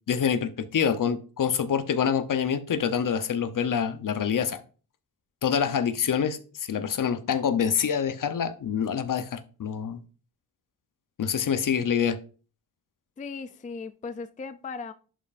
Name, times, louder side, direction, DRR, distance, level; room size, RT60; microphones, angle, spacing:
voice 1, 0.1-4.6 5.4-10.0 11.2-12.2, left 7 dB, 55° left, 0.8 m, -26 dB
voice 2, 13.2-14.9, left 4 dB, 20° left, 0.4 m, -37 dB
11.0 x 5.5 x 2.5 m
wide cardioid pair, 125°, 38 cm